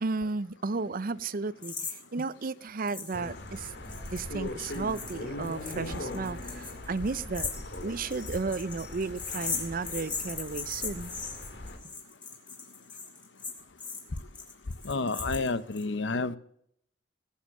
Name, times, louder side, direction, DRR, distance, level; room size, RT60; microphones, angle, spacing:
voice 1, 0.0-1.7 2.1-3.7 4.0-7.5 7.8-11.1, right 4 dB, 50° right, 0.6 m, -33 dB
sound 1, 1.6-2.2 2.9-3.2 3.5-15.8, left 5 dB, 25° left, 3.3 m, -38 dB
sound 2, 3.1-11.8, left 1 dB, 65° left, 2.3 m, -40 dB
voice 2, 14.8-16.4, left 3 dB, 80° left, 0.9 m, -30 dB
20.5 x 7.3 x 6.2 m
head